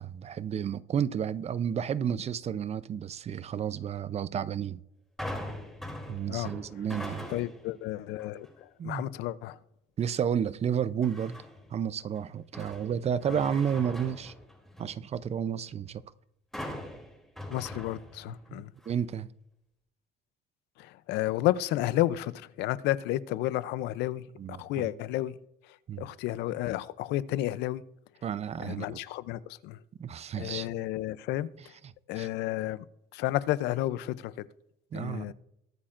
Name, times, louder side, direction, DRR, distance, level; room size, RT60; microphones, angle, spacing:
voice 1, 0.0-4.8 6.1-7.3 8.8-9.0 10.0-11.4 11.7-14.3 14.8-16.0 18.5-19.3 24.4-24.9 25.9-26.0 28.2-28.9 30.0-30.7 31.8-32.3 34.9-35.3, right 8 dB, 40° right, 0.5 m, -31 dB
sound 1, 5.2-7.7 8.2-8.6 11.0-11.7 12.2-15.0 16.5-18.5 18.8-18.9, left 1 dB, ahead, 3.0 m, -41 dB
voice 2, 7.3-9.6 13.3-13.4 17.5-18.7 20.8-24.2 24.5-25.3 26.0-27.8 28.6-29.8 30.4-31.7 32.1-32.8 33.1-34.4 34.9-35.3, left 15 dB, 90° left, 0.6 m, -31 dB
21.0 x 8.5 x 2.5 m
cardioid pair, 110°, 17 cm